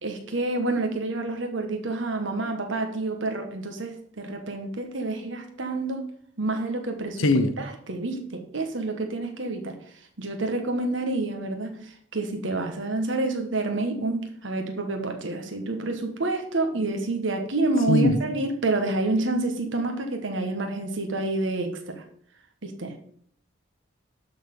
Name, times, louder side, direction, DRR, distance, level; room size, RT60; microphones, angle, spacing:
voice 1, 0.0-6.0 6.4-7.2 7.6-9.8 10.2-22.0 22.6-22.9, right 2 dB, 65° right, 1.3 m, -28 dB
voice 2, 7.2-7.5 17.9-18.2, left 2 dB, 85° left, 0.9 m, -20 dB
12.0 x 4.2 x 5.3 m
head